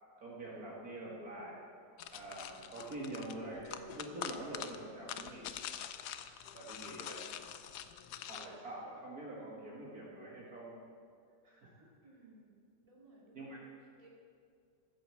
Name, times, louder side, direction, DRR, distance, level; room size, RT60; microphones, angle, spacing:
voice 1, 0.2-1.6 2.1-5.6 6.5-7.2 8.3-10.8 11.4-11.9 13.3-13.6, right 1 dB, 55° right, -5 dB, 2.1 m, -45 dB
sound 1, 2.0-8.5, left 10 dB, 70° left, 1.1 m, -45 dB
voice 2, 12.0-12.5 12.8-14.1, right 2 dB, 20° right, -5 dB, 2.5 m, -60 dB
14.0 x 7.0 x 7.5 m, 2.2 s
omnidirectional pair, 1.9 m